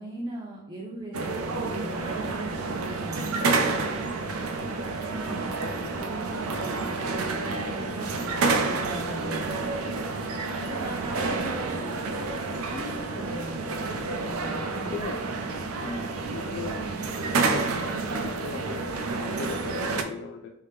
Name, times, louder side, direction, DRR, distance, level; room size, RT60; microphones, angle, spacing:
voice 1, 0.0-3.4 3.8-4.4 4.7-4.8 5.0-7.0 7.3-9.7 10.3-13.6 14.2-15.0 15.8-16.0, right 1 dB, 20° right, -4 dB, 0.5 m, -40 dB
sound 1, 1.1-20.0, right 3 dB, 90° right, 0.4 m, -29 dB
voice 2, 14.7-15.2 15.8-16.0 16.3-16.8 17.5-20.5, left 6 dB, 55° left, 3 dB, 0.3 m, -39 dB
3.4 x 2.8 x 3.3 m, 0.89 s
head